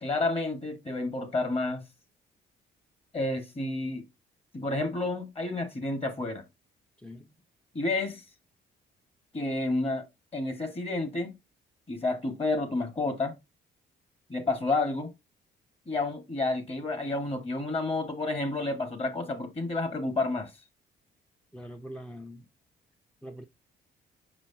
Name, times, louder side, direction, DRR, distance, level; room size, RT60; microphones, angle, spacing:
voice 1, 0.0-1.8 3.1-4.0 4.5-6.5 7.7-8.2 9.3-10.0 10.3-11.3 11.9-13.3 14.3-15.1 15.9-20.5, left 2 dB, 30° left, 1.7 m, -30 dB
voice 2, 7.0-7.3 21.5-22.5 23.2-23.4, equal, 5° left, 0.7 m, -43 dB
6.1 x 5.4 x 2.8 m
cardioid pair, 90°, 20 cm